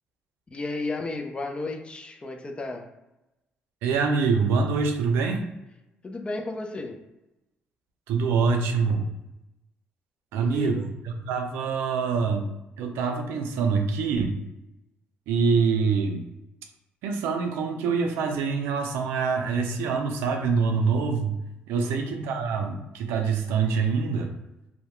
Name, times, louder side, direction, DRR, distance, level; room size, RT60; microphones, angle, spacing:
voice 1, 0.5-2.9 6.0-7.0 10.3-10.9 21.8-22.0, left 2 dB, 25° left, 4 dB, 0.4 m, -33 dB
voice 2, 3.8-5.5 8.1-9.1 10.3-12.5 12.8-14.4 15.3-16.2 17.0-21.4 21.7-24.3, right 5 dB, 90° right, 4 dB, 0.4 m, -25 dB
2.2 x 2.1 x 2.9 m, 0.94 s
cardioid pair, 75°, 4 cm